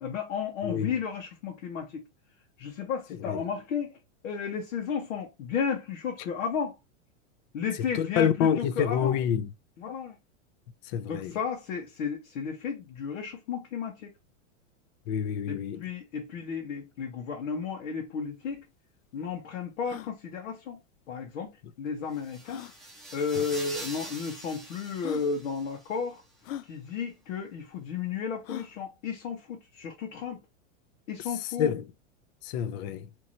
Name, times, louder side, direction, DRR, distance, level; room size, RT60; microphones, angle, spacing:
voice 1, 0.0-2.0 2.6-3.9 4.2-6.8 7.5-9.2 9.8-10.2 11.1-14.1 15.5-18.7 19.1-20.8 21.1-21.5 21.8-22.7 23.1-26.2 26.6-30.4 31.1-31.7, left 6 dB, 70° left, 1.3 m, -33 dB
voice 2, 0.6-0.9 3.3-3.4 7.9-9.5 10.9-11.4 15.1-15.8 23.4-23.5 31.6-31.9 32.4-33.1, left 8 dB, 35° left, 0.4 m, -27 dB
sound 1, 18.3-18.4 18.5-18.6 19.2-19.3 19.8-20.1 21.5-21.6 22.4-22.8 23.7-23.8 24.6-24.7 25.0-25.3 26.4-26.7 28.4-28.8, left 12 dB, 85° left, 0.5 m, -40 dB
sound 2, 22.1-26.0, right 1 dB, ahead, 0.9 m, -44 dB
4.5 x 2.9 x 2.7 m
supercardioid pair, 145°, 39 cm